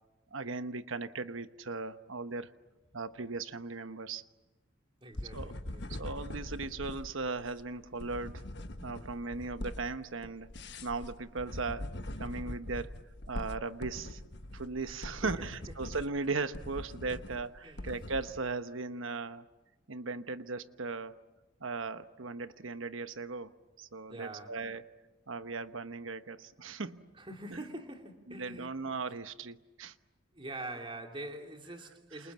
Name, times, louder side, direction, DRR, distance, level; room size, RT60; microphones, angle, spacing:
voice 1, 0.3-2.5 2.9-4.2 5.3-5.5 5.9-8.4 8.8-12.9 13.3-14.2 14.5-19.5 19.9-21.2 21.6-23.5 23.8-24.8 25.3-27.1 28.3-29.9, right 3 dB, 80° right, 1.1 m, -38 dB
voice 2, 5.0-6.2 14.8-15.9 17.6-17.9 24.1-24.5 27.2-28.7 30.3-32.3, right 1 dB, 25° right, 3.0 m, -45 dB
sound 1, 5.1-18.4, left 1 dB, 60° left, 1.4 m, -43 dB
28.5 x 28.0 x 7.4 m
head